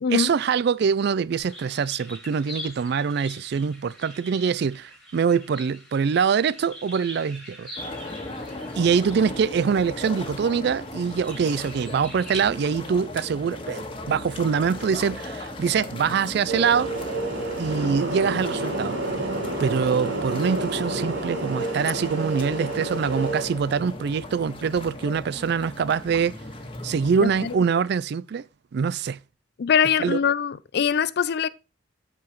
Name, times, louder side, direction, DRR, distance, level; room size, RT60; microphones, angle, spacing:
voice 1, 0.1-7.7 8.7-16.9 17.6-19.0 19.6-26.4 26.8-28.4 28.7-29.2 30.0-30.2, right 6 dB, 60° right, 0.4 m, -24 dB
sound 1, 1.4-12.4, equal, ahead, 2.9 m, -43 dB
sound 2, 7.8-27.6, left 1 dB, 30° left, 1.5 m, -37 dB
sound 3, 16.5-23.4, right 2 dB, 80° right, 3.4 m, -29 dB
voice 2, 27.2-27.6 29.6-31.5, left 7 dB, 60° left, 0.4 m, -23 dB
14.0 x 4.9 x 3.1 m
head